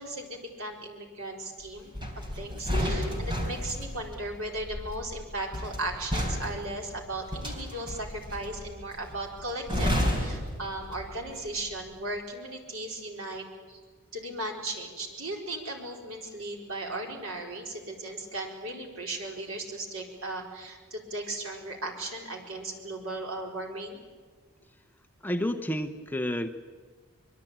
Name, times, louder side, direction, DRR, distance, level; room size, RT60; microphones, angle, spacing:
voice 1, 0.0-13.8 14.1-24.0, right 2 dB, 70° right, 1 dB, 4.3 m, -37 dB
sound 1, 1.9-11.3 11.6-11.9, equal, 20° right, 4.0 m, -32 dB
voice 2, 25.2-26.5, equal, 10° left, 7 dB, 0.8 m, -30 dB
24.5 x 22.0 x 8.8 m, 1.5 s
head